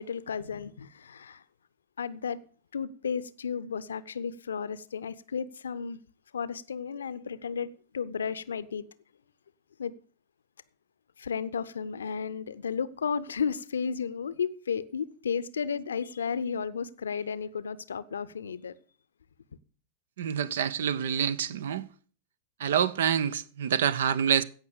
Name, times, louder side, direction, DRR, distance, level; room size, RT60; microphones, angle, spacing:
voice 1, 0.0-1.4 2.0-2.4 2.7-6.0 6.3-8.8 9.8-9.9 11.2-18.7, left 6 dB, 70° left, 0.6 m, -33 dB
voice 2, 20.2-21.9 22.6-24.4, right 8 dB, 60° right, 0.6 m, -27 dB
16.0 x 6.0 x 6.7 m
figure-of-eight pair, 90°, 0 cm